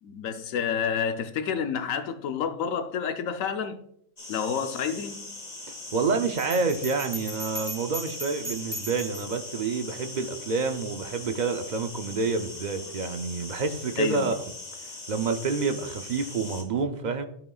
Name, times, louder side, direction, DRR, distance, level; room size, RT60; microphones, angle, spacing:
voice 1, 0.0-3.8 4.3-5.3 14.0-14.3, left 7 dB, 80° left, 1.1 m, -29 dB
sound 1, 4.2-16.6, left 2 dB, 30° left, 1.1 m, -41 dB
voice 2, 5.9-14.3 15.1-17.2, right 4 dB, 55° right, 0.5 m, -28 dB
Bell, 6.4-9.3, equal, 30° right, 1.5 m, -38 dB
12.5 x 5.2 x 2.3 m
omnidirectional pair, 1.4 m